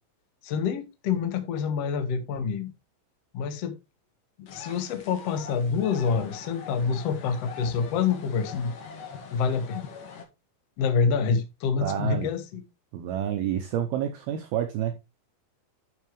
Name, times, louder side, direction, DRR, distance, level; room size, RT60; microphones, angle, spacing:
voice 1, 0.4-2.7 3.3-3.7 4.4-8.7 9.3-9.8 10.8-12.6, left 6 dB, 85° left, 1.4 m, -27 dB
sound 1, 4.5-10.2, left 5 dB, 55° left, 3.1 m, -43 dB
voice 2, 11.8-12.3 12.9-15.0, right 10 dB, 80° right, 2.3 m, -29 dB
11.0 x 6.4 x 3.2 m
omnidirectional pair, 5.4 m